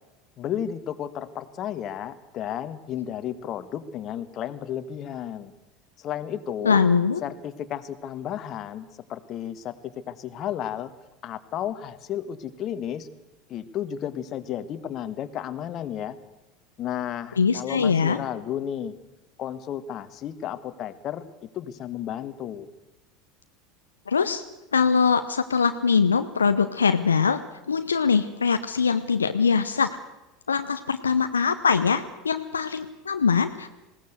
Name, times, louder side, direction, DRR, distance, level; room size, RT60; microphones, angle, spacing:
voice 1, 0.4-5.5 6.0-6.8 7.2-10.9 11.2-13.1 13.5-16.2 16.8-18.9 19.4-22.7, left 10 dB, 40° left, 11 dB, 1.5 m, -33 dB
voice 2, 6.6-7.2 17.4-18.2 24.1-24.4 24.7-27.4 27.7-29.9 30.5-33.7, left 5 dB, 80° left, 9 dB, 0.8 m, -22 dB
20.0 x 17.5 x 8.0 m, 1.0 s
figure-of-eight pair, 80°, 0 cm